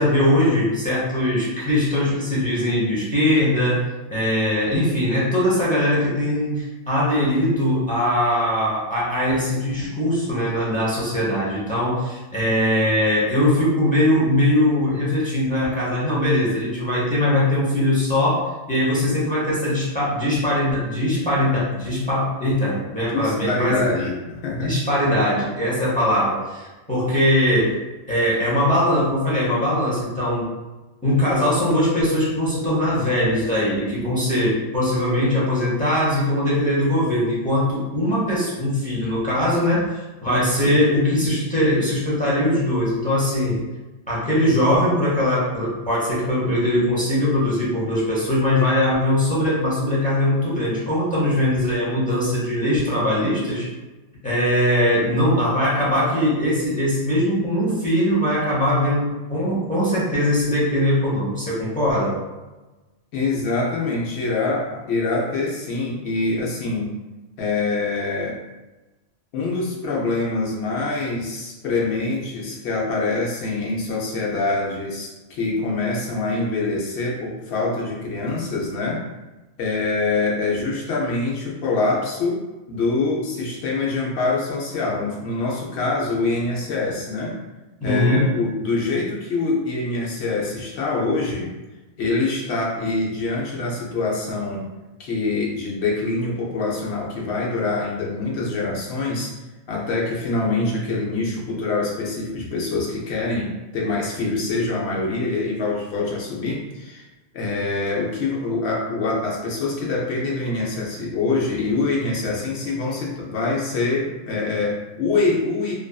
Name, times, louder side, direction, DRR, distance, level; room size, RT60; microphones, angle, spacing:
voice 1, 0.0-3.8 4.1-23.9 24.5-27.8 28.1-30.5 31.0-39.9 40.2-43.6 44.1-53.7 54.2-62.2 87.8-88.4, left 1 dB, 10° left, -8 dB, 0.6 m, -21 dB
voice 2, 23.0-24.7 40.3-40.8 63.1-67.0 67.4-68.4 69.3-79.0 79.6-82.4 82.7-87.4 87.8-91.5 92.0-94.7 95.0-99.3 99.7-107.1 107.3-115.7, left 3 dB, 65° left, -3 dB, 0.9 m, -25 dB
2.4 x 2.3 x 2.2 m, 1.1 s
omnidirectional pair, 1.2 m